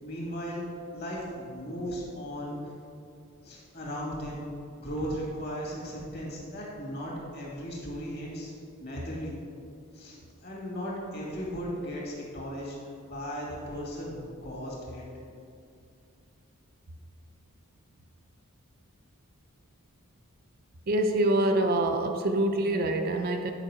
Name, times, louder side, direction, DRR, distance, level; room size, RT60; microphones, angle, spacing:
voice 1, 0.0-0.6 0.9-2.6 3.4-4.4 4.8-8.5 8.8-9.4 9.9-15.0, equal, 50° left, -4 dB, 2.1 m, -36 dB
voice 2, 20.9-23.5, right 1 dB, 40° right, 4 dB, 0.5 m, -25 dB
9.2 x 5.0 x 4.8 m, 2.4 s
head